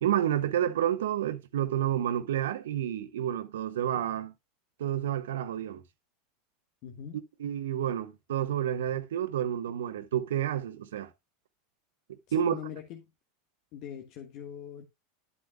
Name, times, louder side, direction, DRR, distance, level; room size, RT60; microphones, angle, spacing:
voice 1, 0.0-4.3 4.8-5.8 7.4-11.1 12.1-12.6, right 10 dB, 80° right, 1.0 m, -30 dB
voice 2, 6.8-7.2 12.3-13.0 13.7-14.8, left 9 dB, 55° left, 1.4 m, -42 dB
11.0 x 8.3 x 2.2 m
hypercardioid pair, 95°, 0 cm